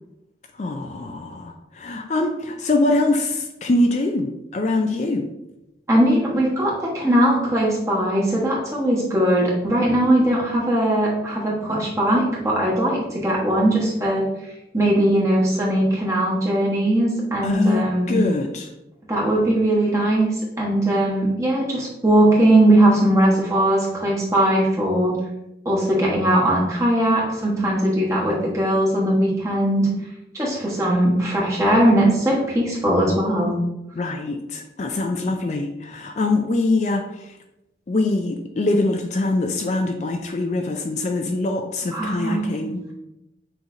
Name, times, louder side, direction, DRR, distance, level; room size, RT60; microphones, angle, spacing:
voice 1, 0.6-5.3 17.4-18.7 34.0-37.4 37.9-42.9, left 2 dB, 40° left, 4 dB, 0.3 m, -23 dB
voice 2, 5.9-14.3 14.7-18.2 19.1-20.3 20.6-25.2 25.6-29.9 30.3-33.6 41.9-42.4, right 1 dB, 15° right, -5 dB, 1.2 m, -19 dB
6.2 x 3.2 x 2.6 m, 0.90 s
head